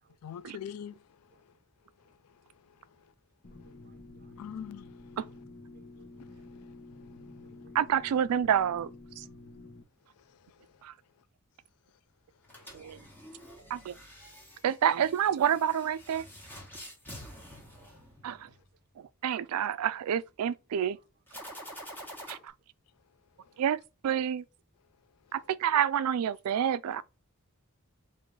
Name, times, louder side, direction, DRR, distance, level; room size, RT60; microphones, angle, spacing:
voice 1, 0.2-1.5 2.0-3.1 3.6-3.7 4.4-5.2 6.2-7.5 10.2-10.8 11.2-11.3 12.5-12.8 17.5-18.0 22.0-22.5 23.4-23.6 25.2-25.3, left 8 dB, 85° left, 0.4 m, -48 dB
sound 1, 3.4-9.8, left 2 dB, 45° left, 0.9 m, -49 dB
voice 2, 3.5-4.4 5.7-6.2 6.5-6.6 7.6-7.8 12.5-12.9 17.1-17.2 17.5-17.8 18.6-18.7 19.0-19.1, right 4 dB, 45° right, 0.6 m, -66 dB
voice 3, 7.7-8.9 9.2-9.3 10.8-10.9 12.7-13.0 13.7-13.9 14.6-16.3 18.2-18.5 19.0-21.0 22.3-22.5 23.6-24.4 25.3-27.0, right 9 dB, 85° right, 0.3 m, -28 dB
sound 2, 12.4-18.6 21.3-22.4, equal, 10° left, 1.1 m, -48 dB
3.8 x 2.6 x 4.6 m
head